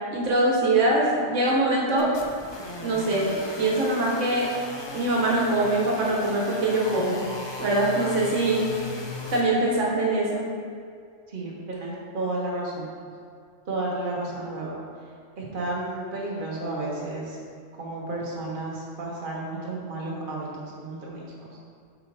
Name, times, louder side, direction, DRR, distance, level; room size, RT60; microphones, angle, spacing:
voice 1, 0.1-2.1 2.8-3.3 3.6-4.5 4.9-7.2 7.6-8.6 9.3-10.4, right 2 dB, 90° right, -3 dB, 1.4 m, -23 dB
sound 1, 2.0-9.4, left 2 dB, 30° left, 0.5 m, -37 dB
voice 2, 11.3-12.9 13.7-14.7 15.4-17.2 17.8-21.5, right 2 dB, 45° right, -4 dB, 1.4 m, -32 dB
7.7 x 5.0 x 3.3 m, 2.2 s
omnidirectional pair, 1.2 m